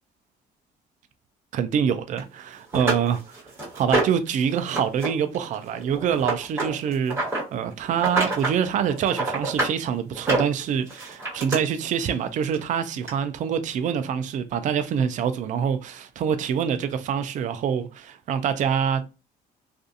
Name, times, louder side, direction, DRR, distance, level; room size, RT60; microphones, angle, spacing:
voice 1, 1.5-3.4 3.7-7.2 7.5-19.0, right 8 dB, 50° right, 0.4 m, -25 dB
sound 1, 2.2-2.3 2.7-4.3 4.7-5.1 5.3-7.4 7.9-8.6 8.9-9.7 10.1-11.6 12.5-12.6 13.1-13.2, right 2 dB, 15° right, 1.3 m, -26 dB
2.4 x 2.4 x 2.6 m
cardioid pair, 110°, 17 cm